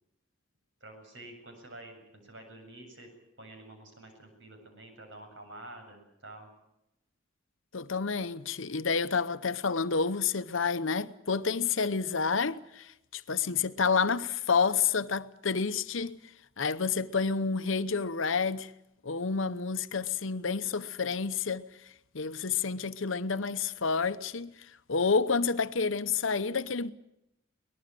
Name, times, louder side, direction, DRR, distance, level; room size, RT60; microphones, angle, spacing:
voice 1, 0.8-3.1 3.4-6.5, right 2 dB, 65° right, 7.7 m, -49 dB
voice 2, 7.7-16.2 16.6-18.7 19.0-21.7 22.1-24.5 24.9-26.9, left 5 dB, 70° left, 0.9 m, -29 dB
23.5 x 19.5 x 7.7 m
head